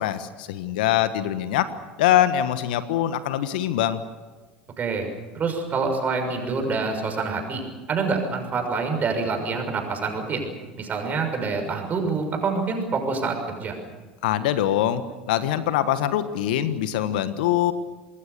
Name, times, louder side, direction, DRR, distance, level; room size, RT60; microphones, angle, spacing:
voice 1, 0.0-1.7 2.0-4.0 14.2-17.7, left 12 dB, 70° left, 12 dB, 1.3 m, -23 dB
voice 2, 4.8-5.1 5.3-7.6 7.9-10.5 10.8-13.7, right 4 dB, 35° right, 4 dB, 6.3 m, -26 dB
26.5 x 20.5 x 6.9 m, 1.2 s
hypercardioid pair, 75°, 5 cm